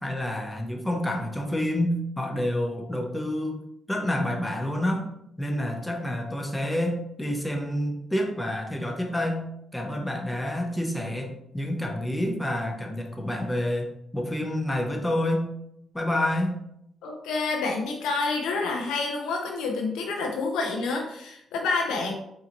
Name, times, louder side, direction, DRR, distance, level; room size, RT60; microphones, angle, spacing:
voice 1, 0.0-3.6 3.9-5.1 5.4-15.5 15.9-16.6, left 1 dB, 10° left, 2 dB, 0.8 m, -28 dB
voice 2, 17.0-22.1, left 3 dB, 85° left, 1 dB, 0.6 m, -28 dB
4.0 x 2.7 x 2.9 m, 0.77 s
supercardioid pair, 60°, 0 cm